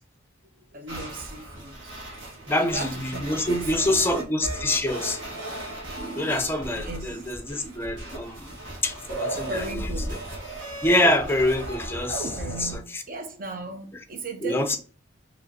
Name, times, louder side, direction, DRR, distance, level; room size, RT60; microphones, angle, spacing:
voice 1, 0.7-2.0 2.4-4.2 6.7-7.2 9.5-10.2 12.2-14.8, right 3 dB, 45° right, 0.8 m, -37 dB
sound 1, 0.9-12.8, right 1 dB, 65° right, 1.8 m, -35 dB
voice 2, 2.5-5.2 6.1-8.5 8.8-9.9 10.8-13.0 14.4-14.8, left 1 dB, 10° left, 0.6 m, -26 dB
5.3 x 3.2 x 2.8 m
head